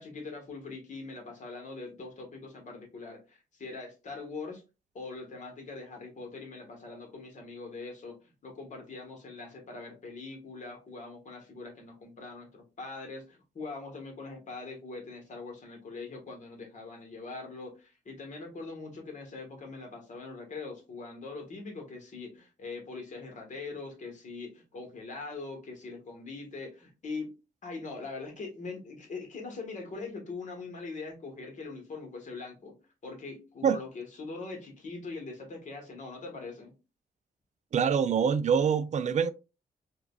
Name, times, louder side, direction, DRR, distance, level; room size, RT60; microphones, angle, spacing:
voice 1, 0.0-4.6 4.9-27.3 27.6-32.8 33.0-36.7, left 3 dB, 50° left, 1.3 m, -42 dB
voice 2, 37.7-39.3, right 7 dB, 45° right, 0.4 m, -25 dB
4.7 x 2.3 x 2.3 m
cardioid pair, 100°, 17 cm